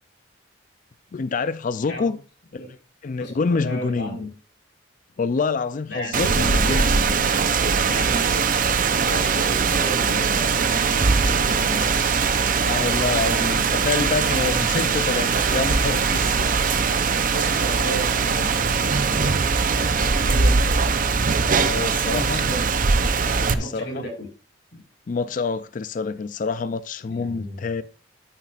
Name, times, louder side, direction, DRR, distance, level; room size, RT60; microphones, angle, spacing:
voice 1, 1.1-2.2 2.5-2.6 3.0-4.2 5.2-7.3 12.6-16.8 21.6-22.5 23.6-24.0 25.1-27.8, left 4 dB, 40° left, 0.4 m, -27 dB
voice 2, 3.2-4.3 5.9-7.0 7.8-11.9 17.3-19.4 20.2-20.6 22.0-22.7 23.1-24.1 24.7-24.8 27.1-27.7, equal, 60° left, 4.3 m, -34 dB
Rain, 6.1-23.5, right 5 dB, 45° right, 0.6 m, -21 dB
sound 1, 10.7-20.2, right 1 dB, 5° right, 2.8 m, -37 dB
12.0 x 9.2 x 2.4 m
head